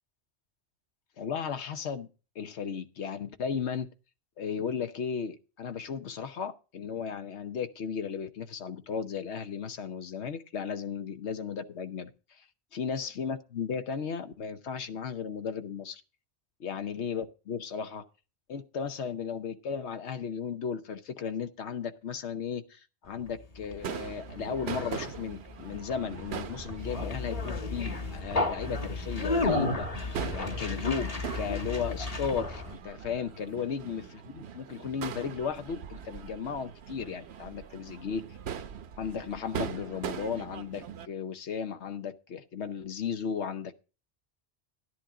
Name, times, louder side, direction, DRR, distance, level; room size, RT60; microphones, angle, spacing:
voice 1, 1.2-2.1 2.4-3.9 4.4-12.1 12.4-12.5 12.7-16.0 16.6-18.0 18.5-38.2 39.0-43.7, left 6 dB, 90° left, 1.2 m, -35 dB
Conversation, 23.3-32.7, left 2 dB, 35° left, 1.3 m, -33 dB
Crowd / Fireworks, 23.8-41.1, right 8 dB, 75° right, 1.0 m, -42 dB
11.5 x 11.0 x 3.8 m
omnidirectional pair, 1.1 m